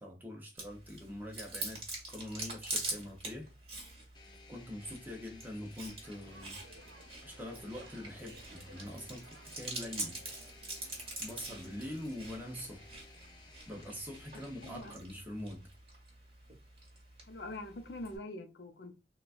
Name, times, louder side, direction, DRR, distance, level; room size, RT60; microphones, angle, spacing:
voice 1, 0.0-3.5 4.5-6.6 7.2-9.3 9.6-10.2 11.2-12.8 13.7-15.6, left 1 dB, 10° right, 0.7 m, -44 dB
Chewing mastication, 0.6-18.2, right 2 dB, 35° right, 1.4 m, -45 dB
sound 1, 4.1-14.8, left 3 dB, 25° left, 0.5 m, -58 dB
sound 2, 6.0-12.9, right 2 dB, 75° right, 0.7 m, -59 dB
voice 2, 14.6-14.9 17.3-18.9, left 1 dB, 70° left, 0.6 m, -44 dB
3.9 x 2.3 x 2.4 m
head